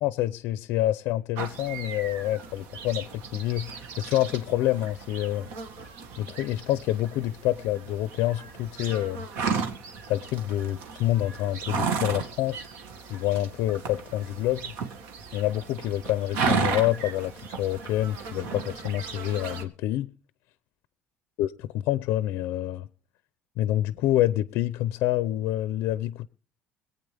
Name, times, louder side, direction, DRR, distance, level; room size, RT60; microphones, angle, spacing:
voice 1, 0.0-5.5 6.2-9.3 10.1-12.7 13.1-14.7 15.3-20.1 21.4-22.9 23.6-26.3, left 14 dB, 70° left, 0.6 m, -27 dB
sound 1, 1.4-19.6, right 5 dB, 85° right, 1.9 m, -34 dB
25.0 x 8.6 x 3.4 m
cardioid pair, 175°, 4 cm